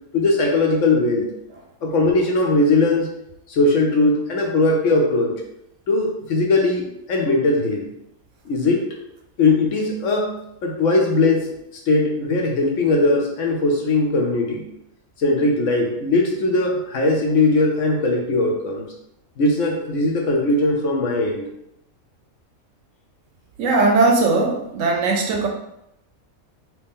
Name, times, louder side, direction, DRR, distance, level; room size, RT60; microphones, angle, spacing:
voice 1, 0.1-1.3 1.8-3.1 3.5-5.3 5.9-7.8 8.5-8.8 9.4-10.3 10.6-11.5 11.9-14.6 15.2-18.9 19.4-21.4, left 2 dB, 65° left, 1 dB, 1.0 m, -19 dB
voice 2, 23.6-25.5, right 3 dB, 70° right, 2 dB, 0.9 m, -18 dB
3.1 x 2.9 x 3.6 m, 0.81 s
omnidirectional pair, 1.5 m